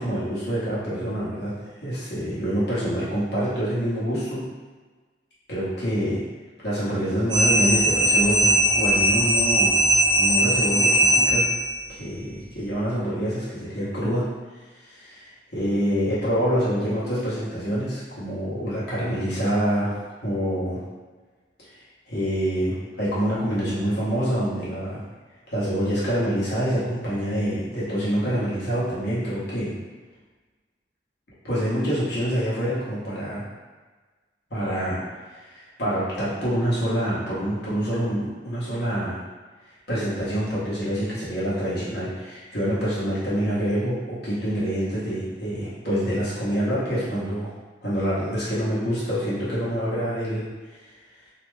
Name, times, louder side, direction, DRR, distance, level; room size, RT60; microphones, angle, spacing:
voice 1, 0.0-1.5 1.8-4.4 5.5-6.2 6.6-9.7 10.2-11.5 11.9-14.3 14.8-19.9 20.2-20.8 22.1-25.0 25.5-29.7 31.4-33.4 34.5-35.0 35.3-39.2 39.9-47.5 47.8-50.5, equal, 60° left, -9 dB, 1.1 m, -26 dB
sound 1, 7.3-11.8, equal, 70° right, 0.8 m, -20 dB
2.8 x 2.1 x 3.2 m, 1.3 s
head